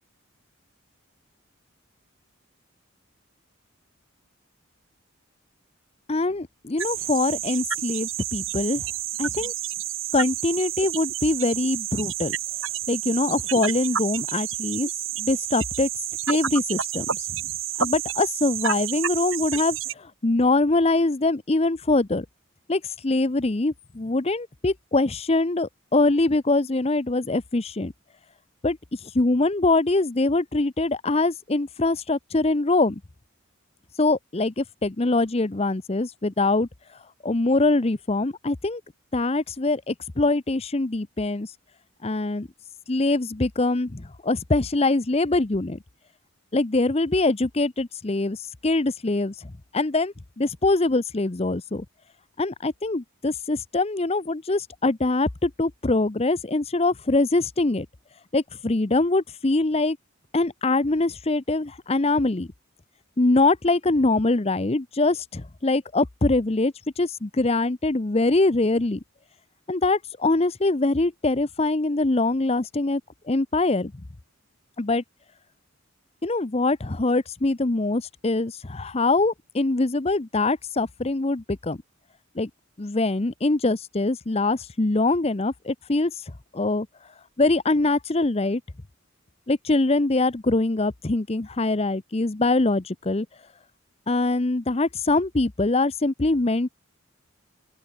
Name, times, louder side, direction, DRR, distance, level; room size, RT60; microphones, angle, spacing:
voice 1, 6.1-8.9 9.2-9.5 10.1-12.4 12.9-14.9 15.2-15.9 16.3-17.3 17.8-22.3 22.7-27.9 28.6-33.0 34.0-36.7 37.2-38.8 39.1-41.5 42.0-42.5 42.9-45.8 46.5-48.4 48.6-51.8 52.4-57.9 58.3-60.0 60.3-62.5 63.2-69.0 69.7-73.0 73.3-73.9 74.8-75.0 76.2-81.8 82.3-82.5 82.8-86.9 87.4-88.6 89.5-93.3 94.1-96.7, left 2 dB, 30° left, 0.7 m, -23 dB
sound 1, 6.8-19.9, right 10 dB, 70° right, 7.8 m, -30 dB
open air
head